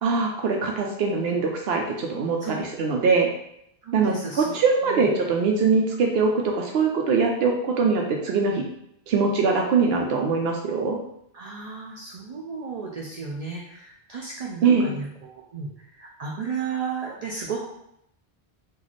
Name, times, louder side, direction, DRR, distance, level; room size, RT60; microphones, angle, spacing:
voice 1, 0.0-3.3 3.9-8.6 9.1-11.0 14.6-14.9, right 4 dB, 75° right, 1 dB, 0.8 m, -22 dB
voice 2, 3.8-4.6 4.9-5.1 11.3-17.7, right 5 dB, 50° right, -2 dB, 0.5 m, -34 dB
3.1 x 2.4 x 3.9 m, 0.76 s
omnidirectional pair, 1.0 m